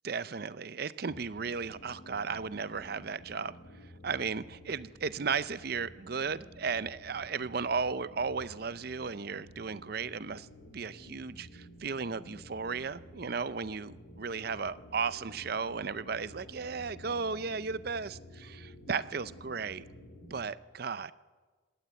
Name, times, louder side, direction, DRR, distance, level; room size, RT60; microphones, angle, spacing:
voice 1, 0.0-3.6 4.0-10.5 10.7-19.8 20.3-21.1, right 5 dB, 50° right, 16 dB, 0.6 m, -35 dB
sound 1, 1.1-20.5, left 1 dB, 90° left, 2.5 m, -52 dB
20.5 x 17.5 x 8.3 m, 1.4 s
head